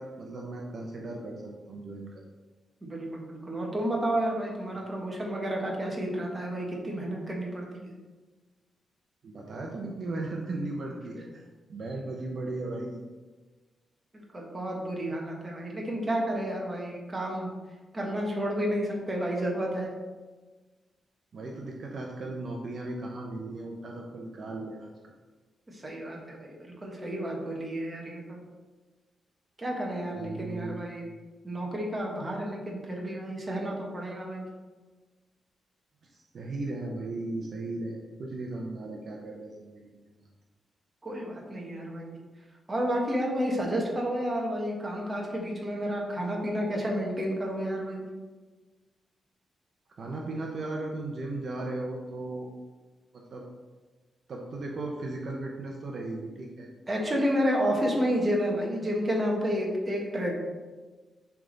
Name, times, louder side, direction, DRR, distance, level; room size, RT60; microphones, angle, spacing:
voice 1, 0.0-2.3 4.7-4.8 9.2-11.4 11.7-13.0 21.3-25.1 30.1-30.8 36.1-40.0 50.0-52.5 53.1-53.5 54.3-56.7, right 2 dB, 45° right, 0 dB, 0.7 m, -36 dB
voice 2, 2.8-7.9 14.1-17.5 17.9-19.9 25.7-28.4 29.6-31.1 31.4-34.4 41.0-42.1 42.7-48.0 56.9-60.3, equal, 15° right, -1 dB, 1.2 m, -31 dB
10.0 x 3.5 x 3.9 m, 1.3 s
wide cardioid pair, 165°, 0 cm